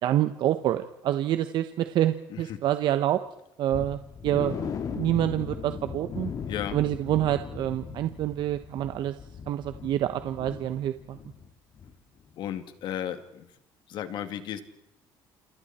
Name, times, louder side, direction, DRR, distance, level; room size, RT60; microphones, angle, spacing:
voice 1, 0.0-3.2 3.6-6.3 6.7-9.1 9.5-11.2, right 12 dB, 60° right, 9 dB, 1.2 m, -27 dB
voice 2, 2.3-2.6 6.5-6.8 12.4-13.5 13.9-14.6, left 10 dB, 65° left, 9 dB, 2.6 m, -34 dB
sound 1, 3.7-11.5 11.7-11.9 12.3-12.4, left 6 dB, 45° left, 2.6 m, -38 dB
28.5 x 28.0 x 4.4 m, 0.84 s
cardioid pair, 130°, 8 cm